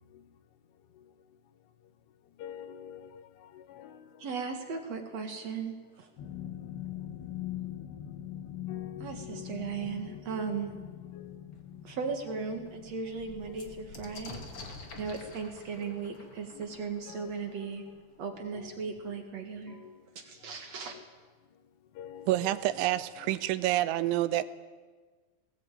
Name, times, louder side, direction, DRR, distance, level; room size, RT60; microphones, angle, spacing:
voice 1, 2.4-4.1 8.7-10.4 11.1-11.4 12.3-12.5 13.5-13.6 15.8-16.1 16.5-16.7 17.1-17.7 18.5-19.2 19.7-19.9 20.9-21.0 22.0-22.6 23.0-23.4, left 9 dB, 85° left, 3.9 m, -48 dB
voice 2, 4.2-6.1 9.0-10.7 11.8-14.4 15.0-17.8 18.2-19.8 20.2-21.0, right 5 dB, 55° right, 1.9 m, -37 dB
sound 1, 6.2-16.9 17.2-17.5 17.9-18.0, left 11 dB, 70° left, 3.0 m, -43 dB
sound 2, 11.5-11.6 12.1-12.2 12.4-18.0 19.0-19.1 19.3-19.9, left 3 dB, 35° left, 2.6 m, -49 dB
voice 3, 22.3-24.4, right 14 dB, 85° right, 3.3 m, -28 dB
19.0 x 19.0 x 9.2 m
omnidirectional pair, 5.4 m